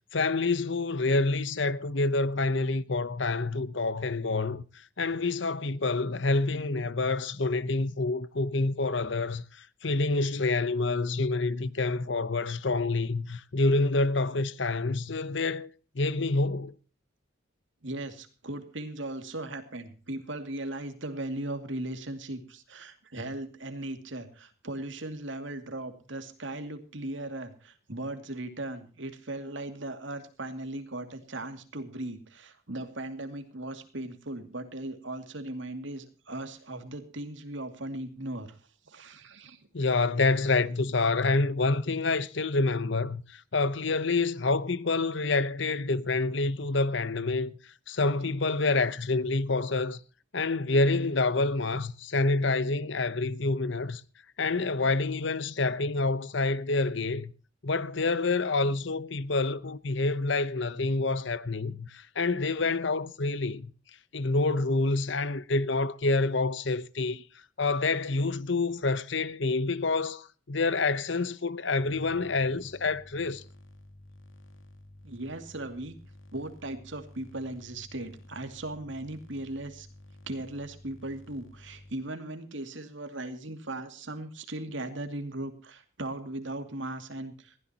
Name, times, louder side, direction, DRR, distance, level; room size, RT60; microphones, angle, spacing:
voice 1, 0.1-4.6 5.0-15.7 15.9-16.7 39.7-47.5 47.9-50.0 50.3-54.0 54.4-57.3 57.6-63.7 64.1-67.2 67.6-73.4, left 3 dB, 65° left, 0.9 m, -27 dB
voice 2, 17.8-38.6 38.9-39.6 75.0-76.0 76.3-79.9 80.3-87.6, right 1 dB, 65° right, 2.5 m, -38 dB
sound 1, 71.8-81.9, left 1 dB, 90° left, 2.9 m, -52 dB
21.0 x 16.0 x 2.9 m
head